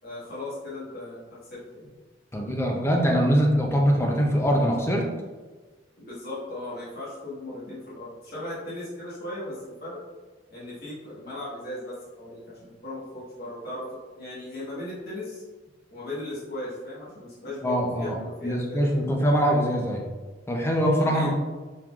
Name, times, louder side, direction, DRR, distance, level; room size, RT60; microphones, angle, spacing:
voice 1, 0.0-1.2 1.5-1.8 6.0-10.0 10.5-13.8 14.1-15.4 15.9-18.9 21.0-21.4, left 1 dB, 55° left, -8 dB, 1.4 m, -37 dB
voice 2, 2.3-5.0 17.6-18.1 18.4-20.0 20.5-21.4, equal, 15° left, 0 dB, 0.5 m, -23 dB
4.5 x 3.7 x 2.4 m, 1.3 s
head